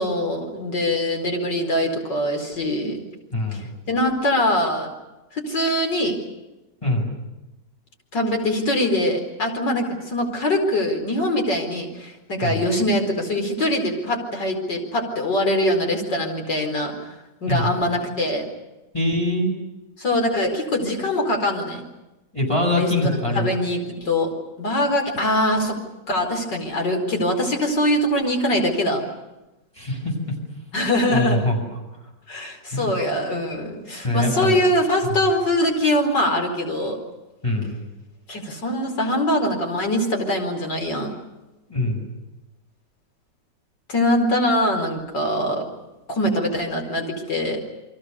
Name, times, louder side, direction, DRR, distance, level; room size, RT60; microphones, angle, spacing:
voice 1, 0.0-3.0 3.5-4.9 5.3-6.2 8.1-16.9 17.4-18.5 20.0-21.8 22.8-22.9 23.3-24.3 24.6-25.8 26.1-29.0 30.7-31.5 32.3-37.0 38.3-41.1 43.9-45.7 46.1-47.6, left 1 dB, 85° left, 3 dB, 5.3 m, -23 dB
voice 2, 3.3-3.7 6.8-7.1 12.4-12.6 17.4-17.8 18.9-19.5 22.3-23.5 29.8-30.1 31.1-31.6 32.7-32.9 34.0-34.6 37.4-37.7 41.7-42.1, left 1 dB, 15° left, 0 dB, 7.5 m, -23 dB
30.0 x 23.5 x 7.0 m, 1.0 s
omnidirectional pair, 1.9 m